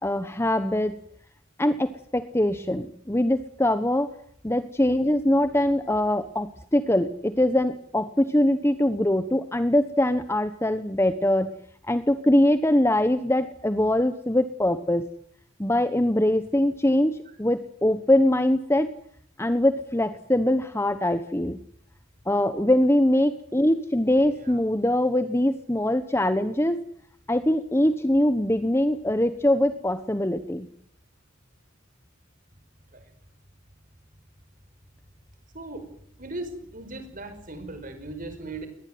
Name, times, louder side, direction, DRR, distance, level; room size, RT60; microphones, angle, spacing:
voice 1, 0.0-1.0 1.6-4.1 4.4-11.5 11.9-15.1 15.6-18.9 19.4-21.6 22.3-26.8 27.3-30.7, left 1 dB, 10° left, 11 dB, 1.0 m, -23 dB
voice 2, 35.5-35.9 36.2-38.7, right 2 dB, 40° right, 8 dB, 5.4 m, -38 dB
22.0 x 19.5 x 9.4 m, 0.65 s
head